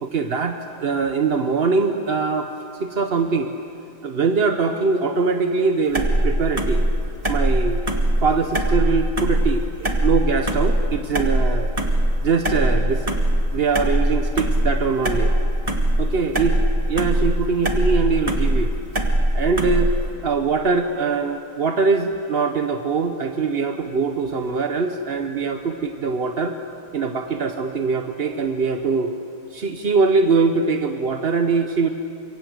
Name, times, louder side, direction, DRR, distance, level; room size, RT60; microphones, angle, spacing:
voice 1, 0.0-2.5 2.8-3.5 4.0-6.9 7.3-7.8 8.2-11.7 12.2-13.2 13.5-15.3 16.0-16.6 16.9-18.7 19.3-19.9 20.2-26.6 26.9-29.1 29.5-31.9, right 4 dB, 45° right, 6 dB, 0.8 m, -22 dB
sound 1, 5.9-20.1, right 1 dB, 20° right, 1.7 m, -21 dB
25.5 x 23.5 x 8.0 m, 2.6 s
omnidirectional pair, 2.3 m